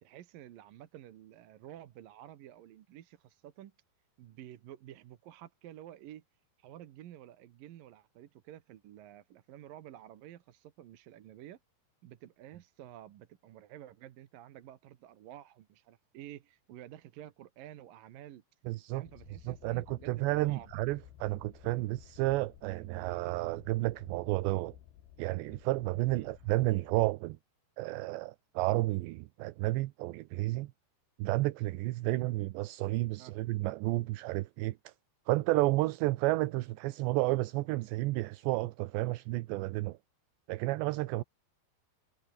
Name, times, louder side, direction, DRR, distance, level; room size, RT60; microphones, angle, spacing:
voice 1, 0.0-3.7 4.2-6.2 6.6-11.6 12.0-18.4 18.9-20.7 26.1-26.3 32.0-32.2 33.2-33.4, right 12 dB, 65° right, 2.6 m, -51 dB
voice 2, 18.7-19.0 19.5-24.8 25.2-27.4 27.8-30.7 31.2-34.9 35.3-40.0 40.5-41.2, right 19 dB, 80° right, 3.0 m, -31 dB
sound 1, 19.0-26.9, left 11 dB, 65° left, 3.7 m, -56 dB
omnidirectional pair, 5.1 m